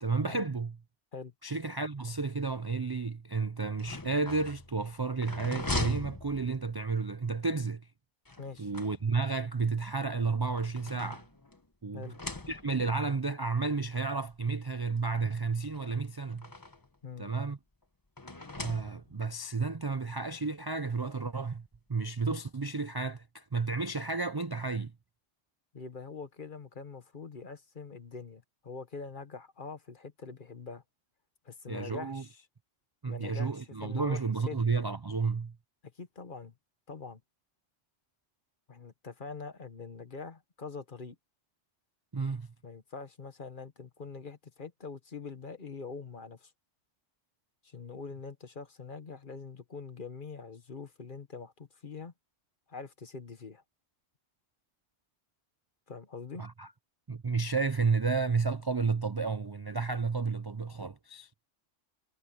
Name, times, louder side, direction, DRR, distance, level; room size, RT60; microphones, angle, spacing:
voice 1, 0.0-0.8 1.4-7.9 8.6-11.2 11.8-12.1 12.5-16.5 17.2-17.6 18.6-24.9 31.7-32.2 33.0-35.6 42.1-42.5 56.4-56.7 57.1-61.3, right 4 dB, 40° right, 0.3 m, -32 dB
sound 1, 3.7-7.0 8.3-9.4 10.3-11.7 12.0-13.0 13.9-14.0 14.3-14.4 15.6-17.0 18.2-19.3, left 2 dB, 20° left, 1.1 m, -40 dB
voice 2, 8.4-8.7 11.9-12.2 17.0-17.3 25.7-30.8 31.4-32.4 33.1-34.6 36.0-36.5 36.9-37.2 38.7-41.2 42.6-46.5 47.6-52.1 52.7-53.6 55.9-56.4, left 4 dB, 45° left, 1.4 m, -44 dB
omnidirectional pair, 1.3 m